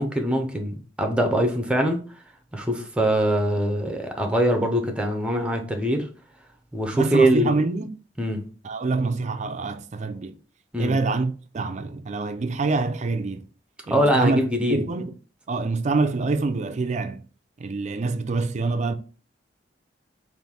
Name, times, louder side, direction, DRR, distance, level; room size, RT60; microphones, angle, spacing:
voice 1, 0.0-2.0 2.5-6.1 6.7-7.6 8.2-8.4 10.7-11.0 13.9-14.9, right 1 dB, 5° right, 0.7 m, -23 dB
voice 2, 6.9-7.9 8.6-10.4 10.8-13.4 13.9-15.1 15.5-17.2 17.6-19.0, right 3 dB, 40° right, 0.4 m, -26 dB
4.0 x 2.6 x 3.4 m
head